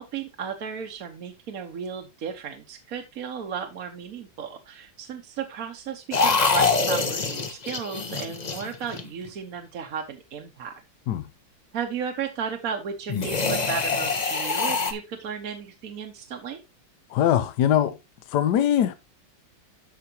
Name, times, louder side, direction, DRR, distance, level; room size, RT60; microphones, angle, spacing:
voice 1, 0.0-10.7 11.7-16.6, right 7 dB, 60° right, 1.3 m, -34 dB
sound 1, 6.1-9.3 13.1-14.9, left 4 dB, 35° left, 0.8 m, -25 dB
voice 2, 17.1-18.0 18.3-18.9, left 10 dB, 75° left, 1.2 m, -22 dB
12.5 x 4.9 x 2.8 m
omnidirectional pair, 1.9 m